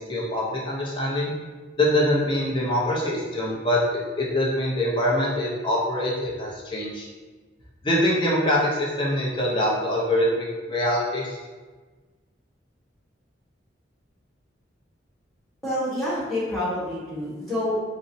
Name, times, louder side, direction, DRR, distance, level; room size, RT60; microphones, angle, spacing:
voice 1, 0.0-1.3 1.8-7.1 7.8-11.4, left 1 dB, 25° left, -4 dB, 0.5 m, -24 dB
voice 2, 15.6-17.8, left 1 dB, ahead, -11 dB, 1.1 m, -27 dB
3.8 x 2.0 x 2.7 m, 1.3 s
head